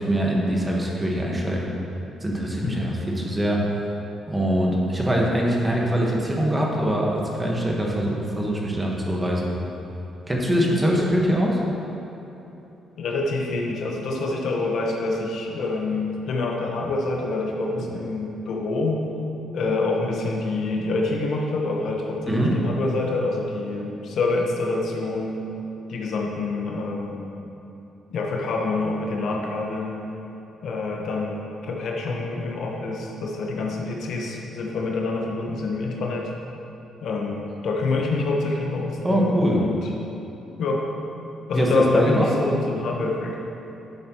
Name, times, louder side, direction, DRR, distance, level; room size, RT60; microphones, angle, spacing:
voice 1, 0.0-1.7 2.2-3.6 4.3-9.5 10.3-11.6 22.3-22.6 39.0-39.6 41.5-42.3, equal, 15° right, -2 dB, 1.5 m, -23 dB
voice 2, 13.0-19.0 19.5-25.4 25.9-27.2 28.1-29.9 30.6-31.4 31.6-36.3 37.0-39.9 40.6-40.8 41.5-43.4, left 3 dB, 70° left, -1 dB, 1.2 m, -26 dB
10.0 x 7.5 x 3.1 m, 3.0 s
cardioid pair, 90°, 0 cm